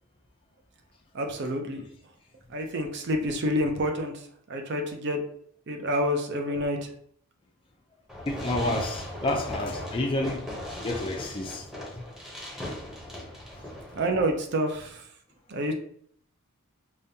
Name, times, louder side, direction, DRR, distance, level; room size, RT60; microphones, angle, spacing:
voice 1, 1.1-1.8 2.5-4.1 4.5-5.2 5.7-6.8 14.0-15.0 15.5-15.7, equal, 50° right, 0.5 m, -28 dB
Fireworks, 8.1-14.1, left 1 dB, ahead, 0.7 m, -38 dB
voice 2, 8.3-10.4 10.8-11.6, left 1 dB, 25° left, 0.3 m, -29 dB
5.0 x 2.3 x 2.7 m
head